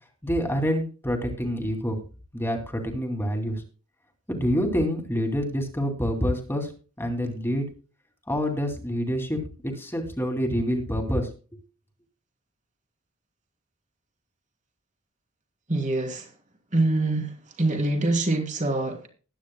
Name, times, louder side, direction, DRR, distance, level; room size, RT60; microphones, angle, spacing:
voice 1, 0.2-2.0 2.3-3.6 4.3-6.7 7.0-7.7 8.3-11.3, equal, 10° left, 3 dB, 2.5 m, -27 dB
voice 2, 15.7-16.3 16.7-17.3 17.6-19.1, right 2 dB, 35° right, 3 dB, 3.1 m, -24 dB
20.0 x 9.7 x 2.2 m, 0.36 s
head